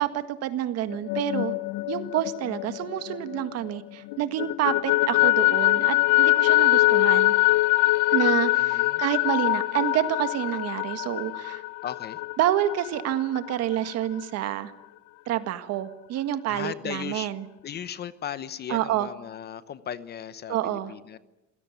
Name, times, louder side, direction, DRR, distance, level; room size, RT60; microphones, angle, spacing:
voice 1, 0.0-1.5 1.9-7.3 8.1-11.6 12.4-14.7 15.3-17.4 18.7-19.1 20.5-20.9, right 12 dB, 50° right, 11 dB, 1.9 m, -28 dB
sound 1, 0.9-3.8 4.1-13.5, left 20 dB, 70° left, 0.7 m, -23 dB
voice 2, 8.5-9.0 11.8-12.2 16.5-17.3 17.6-21.2, left 9 dB, 30° left, 15 dB, 0.8 m, -37 dB
27.0 x 17.0 x 9.3 m, 0.99 s
cardioid pair, 160°, 32 cm